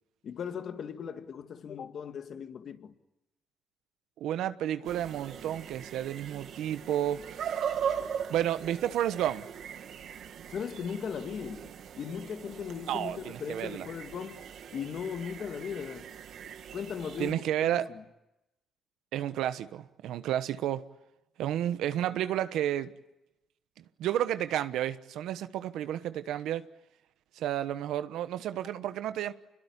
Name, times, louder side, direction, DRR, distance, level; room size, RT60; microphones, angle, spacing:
voice 1, 0.2-2.9 10.5-11.7 12.0-14.4 14.7-16.1 16.7-17.8, left 7 dB, 60° left, 2.1 m, -38 dB
voice 2, 4.2-7.6 8.3-9.4 12.9-13.9 17.2-17.9 19.1-20.8 21.4-22.9 24.0-26.7 27.4-29.3, right 11 dB, 85° right, 1.1 m, -31 dB
sound 1, 4.8-17.3, right 8 dB, 70° right, 2.1 m, -40 dB
27.0 x 22.0 x 9.8 m
cardioid pair, 90°, 0 cm